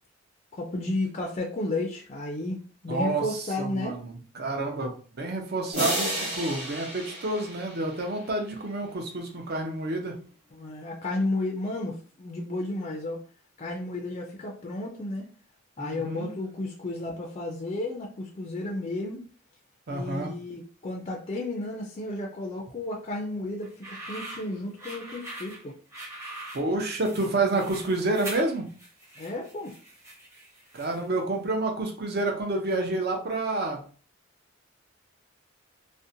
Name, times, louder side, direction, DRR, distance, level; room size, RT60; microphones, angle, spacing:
voice 1, 0.5-4.0 10.5-13.2 13.6-15.3 15.8-19.2 19.9-25.8 29.2-29.7, left 2 dB, 30° left, 0 dB, 0.3 m, -33 dB
voice 2, 2.9-10.1 15.8-16.3 19.9-20.4 26.5-28.7 30.7-33.8, right 2 dB, 50° right, 2 dB, 0.5 m, -29 dB
sound 1, 5.7-8.4, right 1 dB, 35° right, 1.1 m, -32 dB
sound 2, 23.6-31.2, right 1 dB, 15° right, 0.7 m, -43 dB
2.5 x 2.1 x 2.6 m, 0.40 s
head